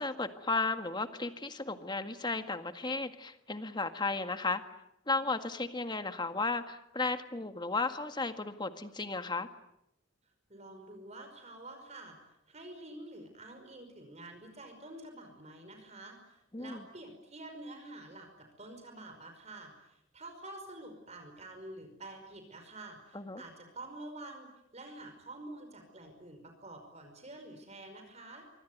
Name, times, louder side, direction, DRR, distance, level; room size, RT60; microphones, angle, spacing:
voice 1, 0.0-4.6 5.1-9.5 16.5-16.8 23.1-23.4, left 3 dB, 25° left, 8 dB, 1.8 m, -34 dB
voice 2, 10.5-12.2 12.5-28.5, right 2 dB, 35° right, 5 dB, 5.4 m, -48 dB
25.5 x 24.5 x 9.4 m, 0.85 s
head